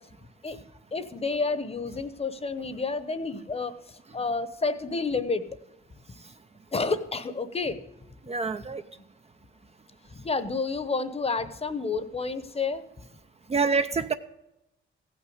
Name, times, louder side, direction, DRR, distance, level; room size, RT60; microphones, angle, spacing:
voice 1, 0.9-5.4 6.7-7.8 10.1-12.8, left 4 dB, 30° left, 12 dB, 0.9 m, -30 dB
voice 2, 8.3-8.8 13.5-14.1, right 4 dB, 30° right, 9 dB, 0.5 m, -26 dB
15.5 x 6.0 x 7.9 m, 0.91 s
cardioid pair, 90°, 21 cm